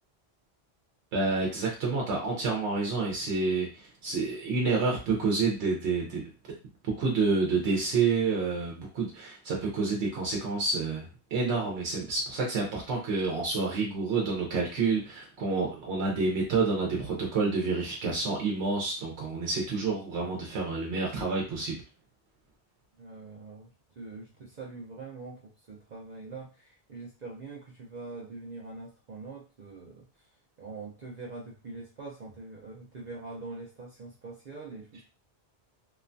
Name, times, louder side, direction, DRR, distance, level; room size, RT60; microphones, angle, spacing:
voice 1, 1.1-6.2 7.0-21.8, right 4 dB, 85° right, -1 dB, 1.0 m, -29 dB
voice 2, 23.0-30.3 30.6-35.0, right 3 dB, 50° right, -3 dB, 0.6 m, -43 dB
3.0 x 2.2 x 2.5 m, 0.32 s
omnidirectional pair, 1.1 m